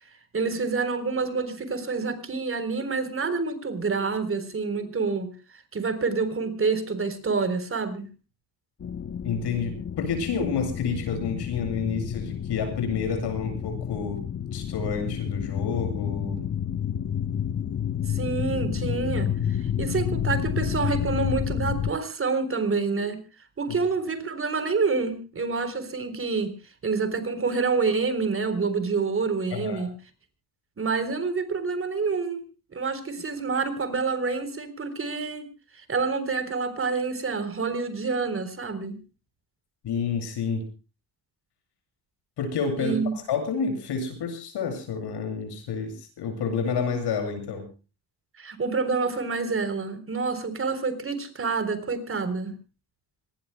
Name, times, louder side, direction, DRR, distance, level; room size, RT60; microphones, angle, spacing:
voice 1, 0.3-5.3 5.7-8.1 18.1-23.2 23.6-26.5 26.8-29.9 30.8-32.4 32.7-35.4 35.8-39.0 42.8-43.1 48.4-52.5, right 4 dB, 35° right, 12 dB, 3.9 m, -27 dB
sound 1, 8.8-21.9, left 9 dB, 35° left, 0.8 m, -30 dB
voice 2, 9.2-14.2 14.5-16.4 23.7-23.8 29.5-29.9 39.8-40.6 42.4-47.7, left 5 dB, 90° left, 6 dB, 8.0 m, -29 dB
26.0 x 21.0 x 2.2 m, 0.33 s
cardioid pair, 150°, 39 cm